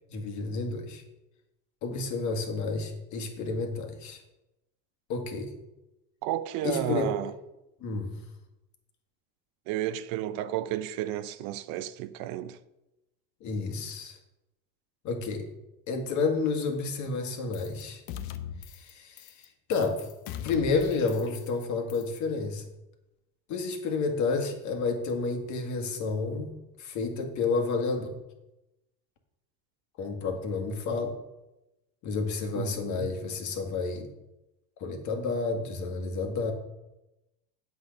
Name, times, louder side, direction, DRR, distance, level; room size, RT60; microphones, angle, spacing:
voice 1, 0.1-1.0 1.8-4.2 5.1-5.5 6.6-7.1 7.8-8.2 13.4-14.2 15.0-15.5 15.9-18.0 18.6-20.1 20.4-22.7 23.5-26.5 26.8-28.1 30.0-31.2 32.0-34.1 34.8-36.5, left 4 dB, 50° left, 1.9 m, -30 dB
voice 2, 6.2-7.3 9.7-12.6 32.6-33.1, right 13 dB, 65° right, 0.7 m, -32 dB
sound 1, 17.5-17.8 18.1-18.9 19.2-19.5 19.7-21.6 21.9-22.2, left 9 dB, 65° left, 0.9 m, -40 dB
8.5 x 7.9 x 5.2 m
cardioid pair, 140°, 38 cm